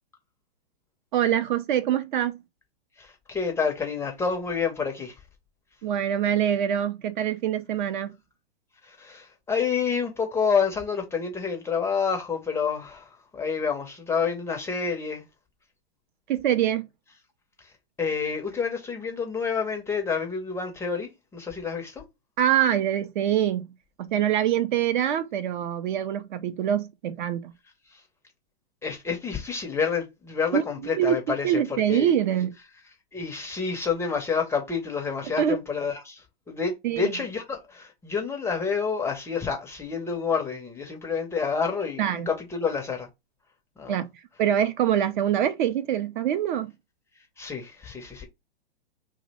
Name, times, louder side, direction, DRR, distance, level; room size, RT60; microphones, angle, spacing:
voice 1, 1.1-2.4 5.8-8.1 16.3-16.9 22.4-23.7 24.0-27.5 30.5-30.6 30.9-32.5 35.4-35.6 36.8-37.1 42.0-42.3 43.9-44.1 44.4-46.7, right 10 dB, 50° right, 0.4 m, -24 dB
voice 2, 3.0-5.1 8.8-15.2 18.0-22.0 28.8-32.1 33.1-43.1 43.8-44.0 47.4-48.3, left 5 dB, 10° left, 0.5 m, -28 dB
2.7 x 2.1 x 3.9 m
hypercardioid pair, 115°, 32 cm